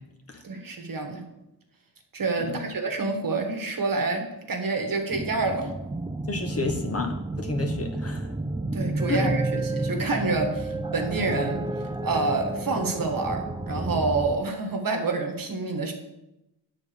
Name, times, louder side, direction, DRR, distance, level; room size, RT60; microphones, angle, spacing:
voice 1, 0.4-1.2 2.1-5.7 8.7-11.6 12.0-15.9, right 3 dB, 50° right, 4 dB, 1.4 m, -28 dB
sound 1, 5.1-14.4, right 2 dB, 10° right, 0.4 m, -31 dB
voice 2, 6.3-8.3 9.1-9.2, left 4 dB, 35° left, 3 dB, 1.3 m, -31 dB
9.6 x 4.0 x 7.0 m, 0.91 s
wide cardioid pair, 105°, 42 cm